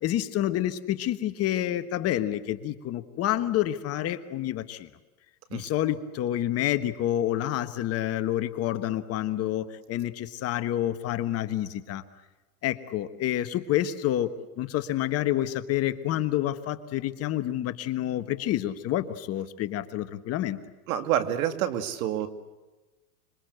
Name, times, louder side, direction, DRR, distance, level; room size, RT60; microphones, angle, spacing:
voice 1, 0.0-4.9 5.5-12.0 12.6-20.6, left 12 dB, 30° left, 10 dB, 1.4 m, -28 dB
voice 2, 20.9-22.3, right 11 dB, 65° right, 10 dB, 2.5 m, -27 dB
26.0 x 24.0 x 8.1 m, 1.2 s
supercardioid pair, 135°, 46 cm